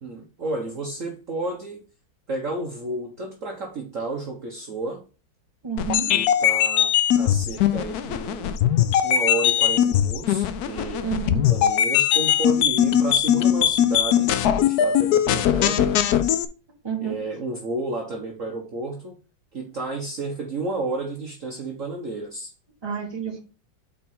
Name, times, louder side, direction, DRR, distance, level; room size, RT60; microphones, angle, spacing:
voice 1, 0.0-1.8 2.3-5.0 6.1-8.6 9.0-11.1 11.5-15.9 17.0-19.2 19.5-22.5, right 2 dB, 45° right, 0 dB, 1.3 m, -31 dB
voice 2, 5.6-6.1 11.0-11.5 16.8-17.1 22.8-23.4, right 7 dB, 15° right, 0 dB, 1.6 m, -29 dB
sound 1, 5.8-16.5, left 10 dB, 70° left, 1.0 m, -20 dB
5.3 x 4.5 x 5.4 m, 0.35 s
omnidirectional pair, 2.1 m